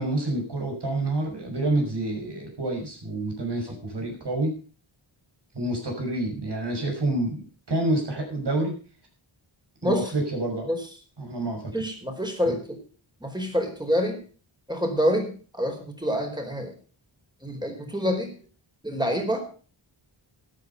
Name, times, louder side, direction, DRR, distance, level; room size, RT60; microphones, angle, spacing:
voice 1, 0.0-4.6 5.5-8.7 9.8-10.7 11.2-11.7 12.5-12.6, right 1 dB, 55° right, 2 dB, 6.2 m, -28 dB
voice 2, 11.7-12.8 13.2-14.1 14.7-16.7 17.4-18.3 18.8-19.4, equal, 10° right, 3 dB, 4.5 m, -27 dB
13.0 x 9.9 x 5.4 m, 0.38 s
wide cardioid pair, 80°, 49 cm